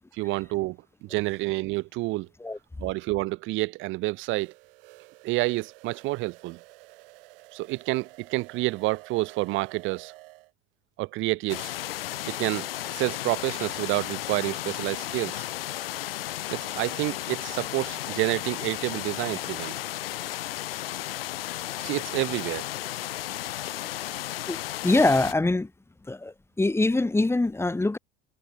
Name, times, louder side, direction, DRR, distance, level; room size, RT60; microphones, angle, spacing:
voice 1, 0.2-2.3 2.8-4.5 5.2-6.6 7.5-10.1 11.0-11.7 12.3-15.4 16.5-19.8 21.8-22.7, right 21 dB, 45° right, 0.5 m, -29 dB
sound 1, 4.3-10.5, right 21 dB, 70° right, 4.4 m, -51 dB
sound 2, 11.5-25.3, left 14 dB, 75° left, 2.0 m, -34 dB
voice 2, 24.5-25.7 26.0-28.0, left 2 dB, 10° left, 1.2 m, -24 dB
hypercardioid pair, 75°, 29 cm